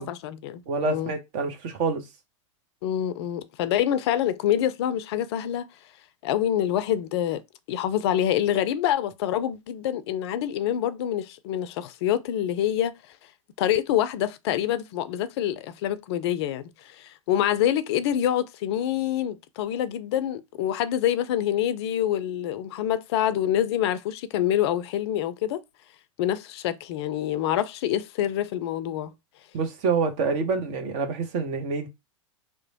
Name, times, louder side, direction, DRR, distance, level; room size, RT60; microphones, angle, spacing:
voice 1, 0.0-0.6 0.9-1.1 2.8-5.7 6.2-7.4 7.7-13.0 13.6-25.6 26.2-29.1, left 11 dB, 50° left, 0.4 m, -26 dB
voice 2, 0.7-2.0 29.5-31.9, right 4 dB, 45° right, 0.8 m, -27 dB
2.9 x 2.0 x 2.7 m
hypercardioid pair, 100°, 17 cm